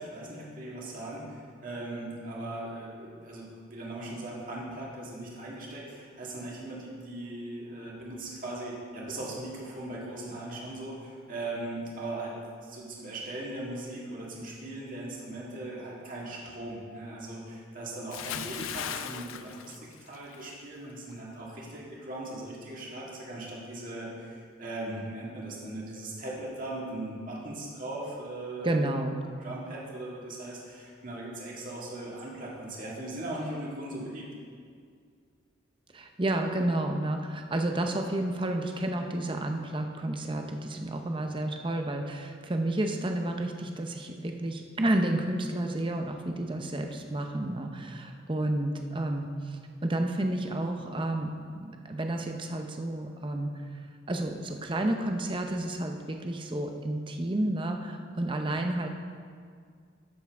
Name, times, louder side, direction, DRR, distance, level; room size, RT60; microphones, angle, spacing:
voice 1, 0.0-12.3 12.6-28.9 29.4-34.3, right 1 dB, 40° right, -4 dB, 1.9 m, -39 dB
Bathtub (filling or washing) / Splash splatter, 18.1-20.5 20.8-21.1, left 9 dB, 80° left, 0.4 m, -38 dB
voice 2, 28.6-29.2 35.9-53.8 54.1-58.9, right 1 dB, 25° right, 4 dB, 0.6 m, -31 dB
12.5 x 7.1 x 3.5 m, 2.1 s
head